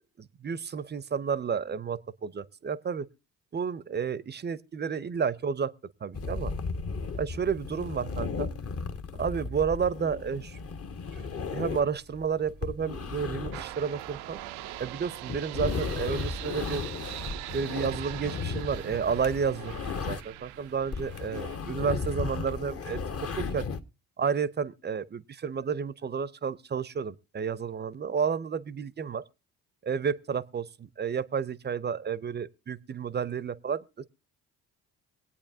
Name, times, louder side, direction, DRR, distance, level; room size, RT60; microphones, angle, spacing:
voice 1, 0.2-3.1 3.5-5.7 6.0-6.5 7.2-8.5 9.1-10.6 11.1-14.4 14.8-16.8 17.5-23.0 23.3-23.6 24.2-29.2 29.8-34.1, right 6 dB, 25° right, 0.6 m, -31 dB
sound 1, 6.1-20.5 20.8-23.8, left 4 dB, 35° left, 0.8 m, -35 dB
sound 2, 13.5-21.6, right 16 dB, 70° right, 0.5 m, -42 dB
24.0 x 8.5 x 2.7 m
hypercardioid pair, 50°, 41 cm